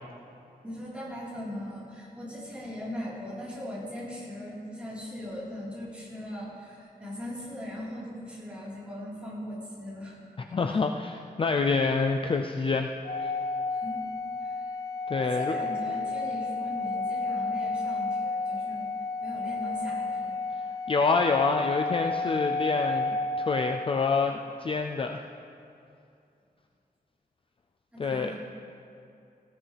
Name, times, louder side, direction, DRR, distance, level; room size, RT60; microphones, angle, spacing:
voice 1, 0.6-10.2 10.7-10.8 13.7-14.0 14.4-14.8 15.2-20.4 27.9-28.3, left 1 dB, 5° right, -9 dB, 4.1 m, -39 dB
voice 2, 10.5-12.9 13.2-13.3 15.1-15.6 20.9-25.2 28.0-28.3, left 4 dB, 35° left, 4 dB, 0.4 m, -27 dB
Organ, 13.0-23.9, left 3 dB, 75° left, 2.8 m, -31 dB
19.5 x 15.0 x 3.4 m, 2.6 s
wide cardioid pair, 180°, 16 cm